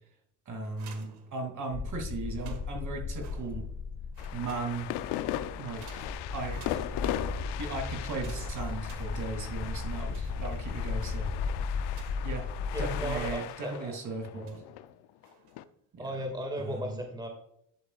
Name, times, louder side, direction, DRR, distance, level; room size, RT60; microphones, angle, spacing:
voice 1, 0.5-3.7 4.3-4.9 5.6-6.1 6.3-6.7 7.6-11.3 12.2-12.5 12.8-14.6 15.9-16.1 16.6-17.0, right 3 dB, 50° right, 4 dB, 2.9 m, -37 dB
sound 1, 0.6-1.8 2.2-3.8 4.1-5.1 5.8-7.3 8.0-9.7 10.0-12.5 13.0-13.8 14.4-14.8 15.2-15.7, right 7 dB, 70° right, 1.8 m, -56 dB
sound 2, 1.7-13.3, left 4 dB, 35° left, 0.9 m, -36 dB
sound 3, 4.2-15.6, left 13 dB, 80° left, 0.7 m, -39 dB
voice 2, 12.7-13.9 16.0-17.3, right 1 dB, 10° right, 3 dB, 2.1 m, -36 dB
11.5 x 7.7 x 2.4 m, 0.70 s
cardioid pair, 95°, 40 cm